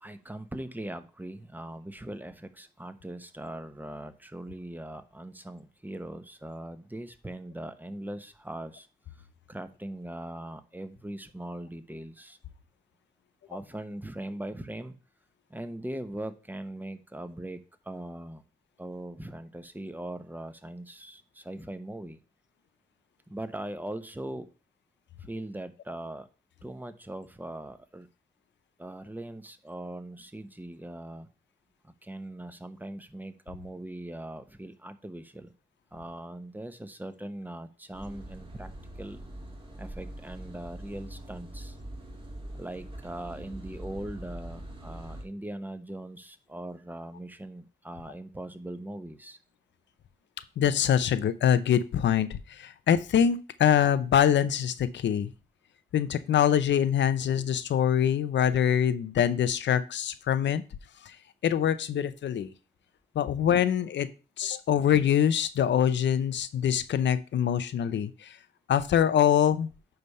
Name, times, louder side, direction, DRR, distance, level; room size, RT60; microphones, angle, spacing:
voice 1, 0.0-8.9 9.2-12.4 13.5-14.9 15.5-18.4 18.8-22.2 23.3-24.5 25.2-26.3 26.6-28.1 28.8-31.3 31.8-35.5 35.9-38.7 39.0-39.2 39.8-41.8 42.6-49.4 57.4-57.5, right 1 dB, 10° right, 10 dB, 0.9 m, -40 dB
sound 1, 37.9-45.2, right 1 dB, 30° right, 1.9 m, -43 dB
voice 2, 50.6-55.3 55.9-60.6 61.0-61.2 61.4-62.5 63.1-64.1 64.4-68.4 68.7-69.7, left 9 dB, 90° left, 13 dB, 0.6 m, -24 dB
9.4 x 3.4 x 5.4 m, 0.33 s
cardioid pair, 75°, 18 cm